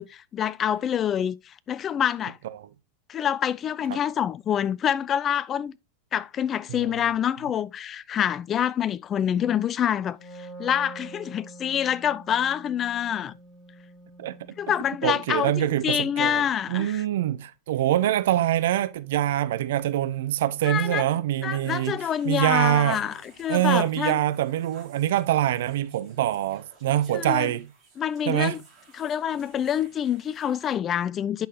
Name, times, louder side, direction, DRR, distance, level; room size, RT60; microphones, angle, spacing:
voice 1, 0.0-1.4 1.7-2.4 3.1-5.7 6.1-10.2 10.6-13.3 14.6-17.0 20.6-21.1 21.4-24.2 27.1-27.5 28.0-28.6 29.0-31.5, left 9 dB, 25° left, 0.3 m, -26 dB
voice 2, 6.7-7.0 14.2-14.3 15.0-22.0 22.2-23.0 23.5-27.7 28.3-28.6, right 13 dB, 55° right, 0.5 m, -25 dB
Wind instrument woodwind instrument, 10.0-15.7, right 2 dB, 5° right, 1.8 m, -46 dB
sound 1, 21.6-30.8, right 4 dB, 30° right, 3.6 m, -55 dB
8.6 x 5.6 x 2.8 m
figure-of-eight pair, 90°, 0 cm